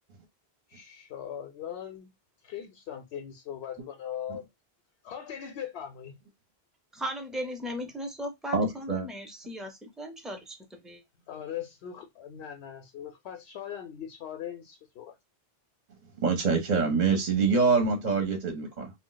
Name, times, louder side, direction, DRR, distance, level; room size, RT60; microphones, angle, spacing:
voice 1, 0.7-2.1 2.4-4.5 5.0-6.2 11.3-15.2, left 9 dB, 85° left, 0.8 m, -40 dB
voice 2, 6.9-11.0, equal, ahead, 0.4 m, -37 dB
voice 3, 8.5-9.1 16.2-18.9, right 4 dB, 50° right, 0.6 m, -25 dB
2.4 x 2.0 x 3.8 m
omnidirectional pair, 1.1 m